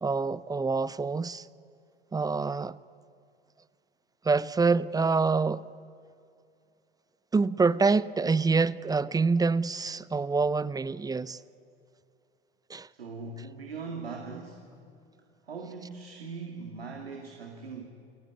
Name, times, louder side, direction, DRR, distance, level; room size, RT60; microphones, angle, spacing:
voice 1, 0.0-1.5 2.1-2.8 4.2-5.7 7.3-11.4 12.7-12.9, right 4 dB, 10° right, 0.7 m, -26 dB
voice 2, 12.9-14.7 15.4-17.8, right 4 dB, 85° right, 2.3 m, -40 dB
29.5 x 18.5 x 8.7 m
hypercardioid pair, 80°, 29 cm